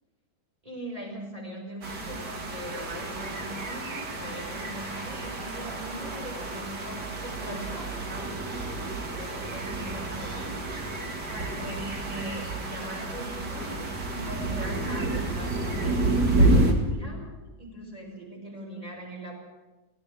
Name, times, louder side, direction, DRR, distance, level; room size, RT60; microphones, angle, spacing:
voice 1, 0.6-8.3 9.1-10.6 11.3-17.3 17.6-19.3, right 1 dB, 20° right, 0 dB, 6.3 m, -40 dB
sound 1, 1.8-16.7, right 2 dB, 90° right, 3.1 m, -29 dB
17.5 x 17.5 x 9.1 m, 1.1 s
omnidirectional pair, 1.7 m